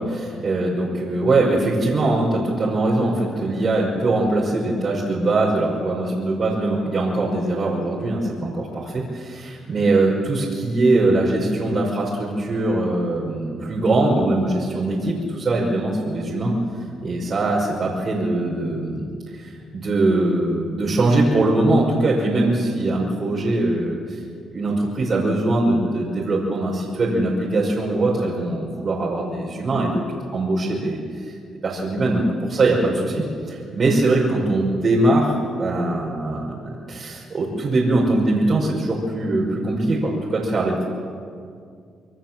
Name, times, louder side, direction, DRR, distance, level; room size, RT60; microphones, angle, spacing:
voice 1, 0.0-16.5 17.0-24.2 24.5-30.0 30.3-31.4 31.6-40.8, right 2 dB, 45° right, -4 dB, 5.9 m, -22 dB
27.0 x 21.5 x 7.7 m, 2.2 s
cardioid pair, 90°, 0 cm